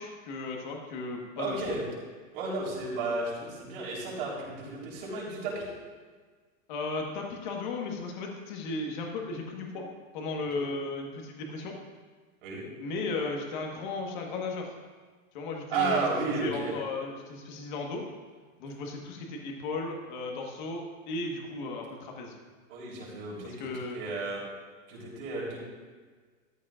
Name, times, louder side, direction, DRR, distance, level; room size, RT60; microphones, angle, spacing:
voice 1, 0.0-1.6 6.7-9.9 10.1-11.7 12.8-14.7 15.3-16.0 16.4-18.0 18.6-22.3 23.4-24.0, left 3 dB, 35° left, 1 dB, 1.5 m, -35 dB
voice 2, 1.4-1.8 2.3-5.7 10.5-10.6 12.4-12.7 15.7-16.8 22.7-24.4 24.9-25.6, right 3 dB, 40° right, -4 dB, 3.6 m, -33 dB
14.0 x 12.5 x 2.5 m, 1.5 s
supercardioid pair, 175°, 40 cm